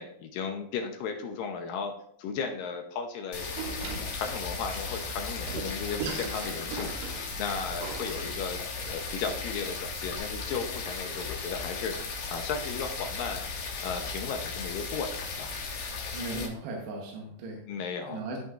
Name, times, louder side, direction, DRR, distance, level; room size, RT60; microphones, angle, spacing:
voice 1, 0.0-1.9 2.2-3.6 4.1-8.6 8.8-13.4 13.8-15.5 17.7-18.4, left 5 dB, 75° left, 4 dB, 2.1 m, -35 dB
sound 1, 3.3-16.5, left 4 dB, 60° left, 2.4 m, -36 dB
Door, 3.6-10.2, right 5 dB, 70° right, 2.4 m, -40 dB
voice 2, 16.1-17.6 18.1-18.4, right 2 dB, 90° right, 0 dB, 3.2 m, -37 dB
14.5 x 5.7 x 2.4 m, 0.68 s
omnidirectional pair, 4.6 m